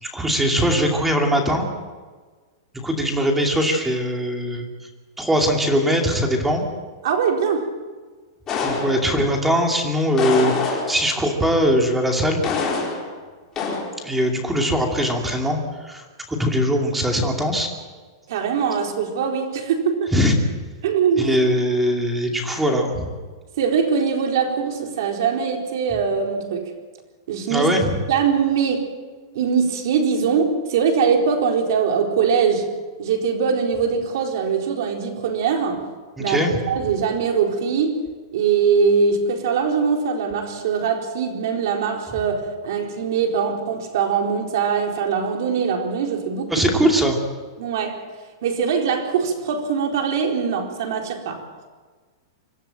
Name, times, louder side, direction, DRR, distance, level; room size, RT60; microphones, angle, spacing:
voice 1, 0.0-1.7 2.7-4.7 5.2-6.6 8.6-12.5 14.0-17.7 20.1-20.3 21.2-23.1 27.5-27.9 36.2-36.6 46.5-47.2, equal, 5° right, 2 dB, 2.6 m, -21 dB
voice 2, 7.0-7.7 18.3-20.1 20.8-21.3 23.6-26.7 27.3-27.7 28.1-28.8 29.3-32.7 33.0-35.8 36.2-38.0 38.3-46.7 47.6-48.0 48.4-51.4, right 6 dB, 60° right, 2 dB, 4.3 m, -22 dB
sound 1, 8.5-9.4 10.2-11.2 12.4-13.2 13.6-13.9, left 4 dB, 20° left, 4.5 m, -25 dB
25.5 x 13.0 x 9.1 m, 1.4 s
supercardioid pair, 160°, 2 cm